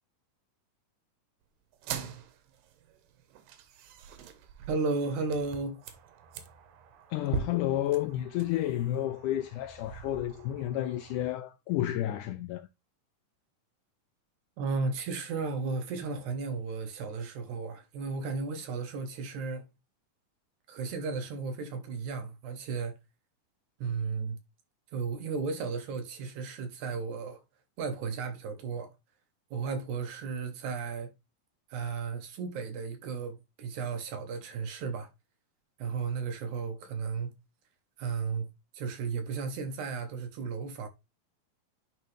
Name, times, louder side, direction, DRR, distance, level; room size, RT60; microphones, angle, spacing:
sound 1, 1.7-11.3, right 8 dB, 85° right, 2.7 m, -43 dB
voice 1, 4.7-5.8 14.6-19.7 20.7-22.9 23.8-24.4 24.9-27.4 27.8-28.9 29.5-31.1 31.7-35.1 35.8-37.3 38.0-38.5 38.7-40.9, right 4 dB, 70° right, 2.0 m, -34 dB
voice 2, 7.1-12.7, left 13 dB, 80° left, 1.8 m, -31 dB
10.5 x 3.7 x 3.2 m
omnidirectional pair, 4.0 m